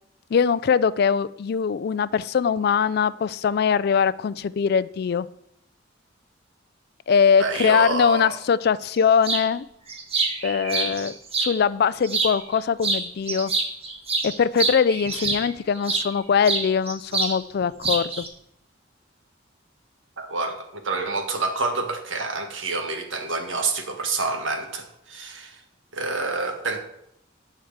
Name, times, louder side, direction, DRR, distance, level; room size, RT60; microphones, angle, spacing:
voice 1, 0.3-5.3 7.1-9.6 10.4-13.5 14.2-18.3, left 6 dB, 55° left, 18 dB, 0.3 m, -22 dB
voice 2, 7.4-8.3 10.7-11.0 20.2-25.6 25.9-26.8, right 3 dB, 80° right, 5 dB, 1.5 m, -28 dB
sound 1, 9.2-9.5 9.9-11.5 12.0-12.6 12.8-16.1 16.4-17.4 17.6-18.3, right 3 dB, 30° right, 1.3 m, -26 dB
10.5 x 4.7 x 7.9 m, 0.78 s
head